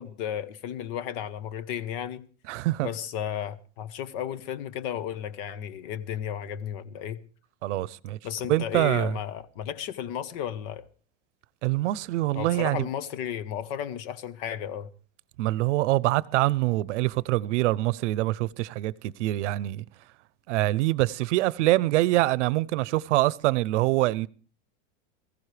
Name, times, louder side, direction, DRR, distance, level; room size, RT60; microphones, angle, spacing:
voice 1, 0.0-2.2 2.8-7.2 8.2-10.9 12.3-14.9, left 9 dB, 50° left, 1.1 m, -34 dB
voice 2, 2.5-2.9 7.6-8.2 8.5-9.1 11.6-12.9 15.4-19.8 20.5-24.3, right 17 dB, 80° right, 0.7 m, -25 dB
22.0 x 15.0 x 3.3 m
supercardioid pair, 155°, 35 cm